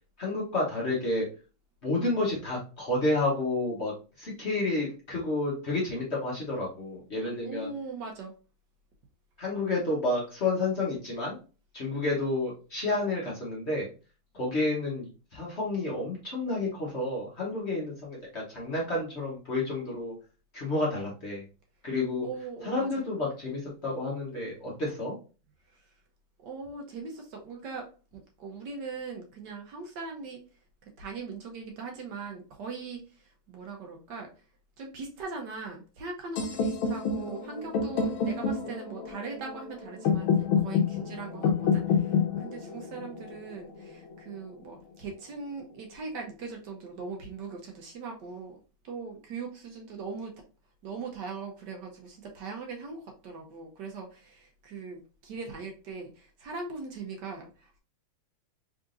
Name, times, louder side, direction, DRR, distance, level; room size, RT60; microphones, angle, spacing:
voice 1, 0.2-1.3 1.8-3.9 4.2-7.7 9.4-11.4 11.7-13.9 14.4-20.1 20.5-21.4 21.8-22.3 22.6-25.1, left 2 dB, 40° left, -4 dB, 1.1 m, -30 dB
voice 2, 7.4-8.3 22.2-23.1 25.7-25.9 26.4-30.4 31.0-34.3 34.8-48.6 48.8-50.3 50.8-57.8, right 4 dB, 65° right, 2 dB, 1.3 m, -40 dB
sound 1, 36.4-44.3, left 5 dB, 90° left, 1.6 m, -29 dB
3.8 x 3.6 x 2.5 m, 0.34 s
omnidirectional pair, 2.2 m